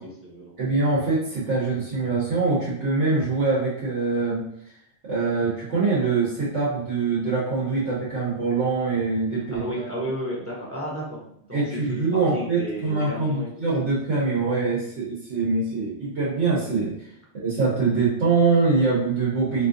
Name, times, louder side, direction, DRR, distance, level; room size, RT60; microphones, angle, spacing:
voice 1, 0.0-0.5 9.6-13.7, equal, 15° right, -5 dB, 0.6 m, -33 dB
voice 2, 0.6-4.4 5.0-9.9 11.5-17.1 17.3-19.7, right 4 dB, 90° right, -6 dB, 1.2 m, -24 dB
3.5 x 2.9 x 2.5 m, 0.72 s
omnidirectional pair, 1.1 m